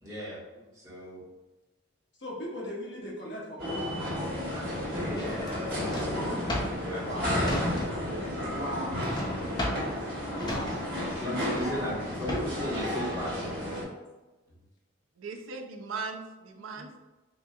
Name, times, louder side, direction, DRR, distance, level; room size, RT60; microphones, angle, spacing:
voice 1, 0.0-0.4 0.7-1.2 4.4-5.3 6.8-7.5 11.2-13.6 16.7-16.9, equal, 15° right, -10 dB, 1.3 m, -36 dB
voice 2, 2.2-4.0 4.3-4.7 6.9-7.5 8.5-9.1 10.3-10.9, equal, 65° left, -4 dB, 0.9 m, -39 dB
sound 1, 3.6-13.8, left 1 dB, 50° right, 1.4 m, -32 dB
Drawer open or close, 5.1-8.2 8.5-12.7, left 1 dB, 20° left, 0.5 m, -36 dB
voice 3, 15.2-17.0, right 4 dB, 90° right, 4 dB, 0.5 m, -38 dB
3.8 x 2.6 x 2.4 m, 1.1 s
head